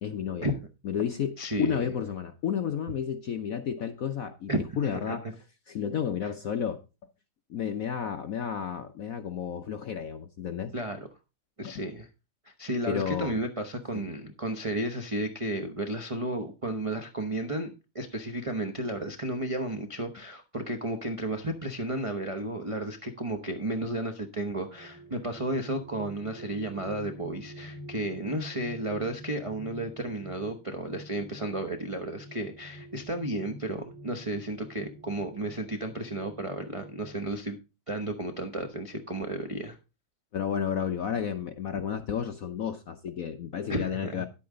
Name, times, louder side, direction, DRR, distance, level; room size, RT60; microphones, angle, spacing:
voice 1, 0.0-0.5 0.8-5.2 5.7-6.8 7.5-10.7 11.6-11.7 12.8-13.3 13.9-14.0 40.3-44.3, left 8 dB, 65° left, 0.8 m, -32 dB
voice 2, 1.4-1.9 4.5-5.2 10.7-11.1 11.6-12.1 12.4-37.6 37.9-39.8 43.7-44.3, right 1 dB, 35° right, 0.5 m, -33 dB
sound 1, 24.5-37.2, equal, 20° left, 3.7 m, -47 dB
10.5 x 8.6 x 3.8 m
omnidirectional pair, 2.3 m